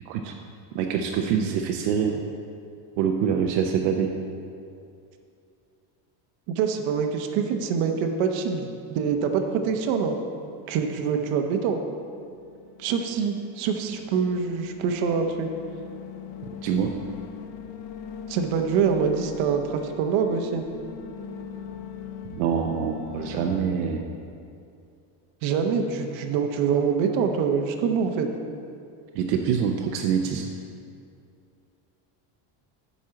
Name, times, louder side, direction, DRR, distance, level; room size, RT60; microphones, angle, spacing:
voice 1, 0.7-2.2 3.0-4.1 16.6-16.9 22.3-24.1 29.1-30.5, right 7 dB, 85° right, 3 dB, 0.9 m, -25 dB
voice 2, 6.5-10.2 10.7-11.8 12.8-15.5 18.3-20.6 25.4-28.3, right 6 dB, 65° right, 4 dB, 1.1 m, -25 dB
sound 1, 11.8-23.6, left 8 dB, 65° left, 0.8 m, -41 dB
7.4 x 5.6 x 7.6 m, 2.5 s
cardioid pair, 135°, 49 cm